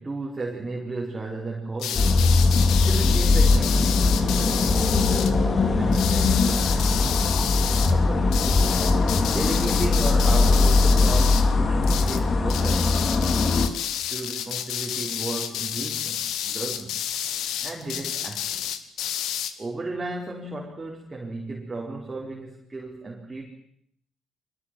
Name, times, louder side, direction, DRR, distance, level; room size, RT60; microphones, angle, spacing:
voice 1, 0.0-2.3 2.8-8.4 9.3-13.4 14.1-17.0 17.6-18.6 19.6-23.5, right 2 dB, 20° right, -1 dB, 4.3 m, -34 dB
sound 1, 1.8-5.3 5.9-7.9 8.3-11.5 11.8-12.2 12.5-19.5, left 10 dB, 80° left, 2.0 m, -30 dB
sound 2, 1.9-13.7, left 3 dB, 40° left, 3.3 m, -20 dB
25.0 x 21.0 x 7.7 m, 0.69 s
cardioid pair, 95°, 0 cm